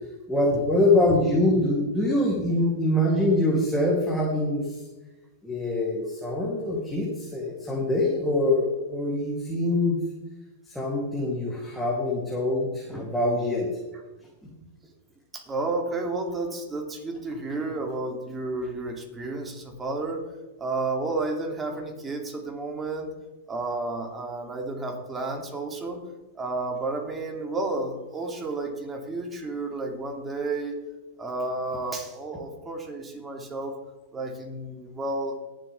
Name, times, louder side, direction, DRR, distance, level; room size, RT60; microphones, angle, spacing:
voice 1, 0.3-4.7 5.4-10.0 10.7-13.7, left 1 dB, ahead, -6 dB, 3.1 m, -24 dB
voice 2, 15.3-20.2 20.6-23.1 23.5-26.0 26.3-30.8 31.2-33.8 34.1-35.4, right 2 dB, 20° right, 2 dB, 2.8 m, -31 dB
21.0 x 7.6 x 3.6 m, 1.1 s
hypercardioid pair, 115°, 0 cm